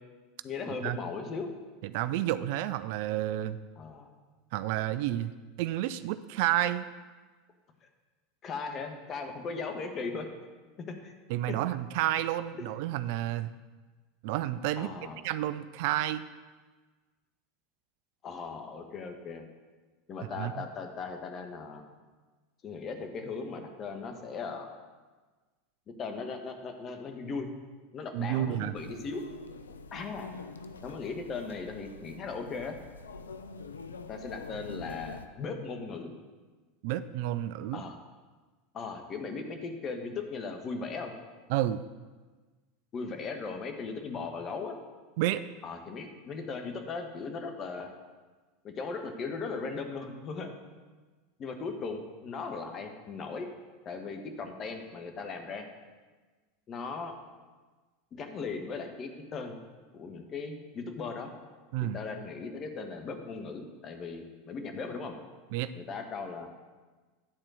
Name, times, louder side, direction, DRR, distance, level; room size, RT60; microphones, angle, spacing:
voice 1, 0.4-1.5 3.8-4.1 8.4-10.3 10.9-11.1 11.5-11.6 14.8-15.2 18.2-19.4 20.1-21.8 22.6-24.7 26.0-27.5 27.9-29.2 29.9-30.3 30.8-32.8 34.1-36.1 37.7-38.0 38.7-41.1 42.9-44.8 45.6-47.9 48.6-50.5 51.4-53.5 53.8-55.7 56.7-57.1 58.1-59.6 59.9-61.3 61.9-65.2 65.7-66.5, left 4 dB, 40° left, 5 dB, 1.3 m, -38 dB
voice 2, 1.8-3.6 4.5-6.9 11.3-13.5 14.2-14.9 15.2-16.2 20.4-20.7 28.1-28.7 36.8-37.8 41.5-41.8 45.2-45.4 61.7-62.0 65.5-65.7, right 13 dB, 60° right, 14 dB, 0.3 m, -30 dB
sound 1, 28.8-35.3, left 4 dB, 90° left, 0.4 m, -45 dB
10.5 x 4.3 x 6.3 m, 1.3 s
hypercardioid pair, 85°, 0 cm